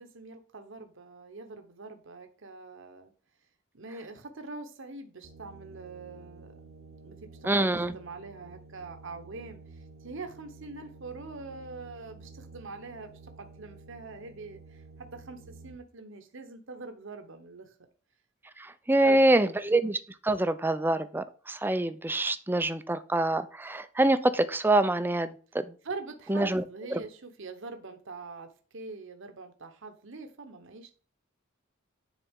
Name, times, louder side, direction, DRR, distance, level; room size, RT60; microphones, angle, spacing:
voice 1, 0.0-3.1 3.7-6.5 7.0-17.7 18.9-19.2 25.8-30.9, right 3 dB, 65° right, 6 dB, 1.0 m, -44 dB
sound 1, 5.2-15.8, right 3 dB, 90° right, 0.9 m, -51 dB
voice 2, 7.4-8.0 18.6-20.0 20.2-25.7 26.3-26.6 26.9-27.0, right 1 dB, 10° right, 12 dB, 0.5 m, -25 dB
10.0 x 4.1 x 3.6 m, 0.39 s
head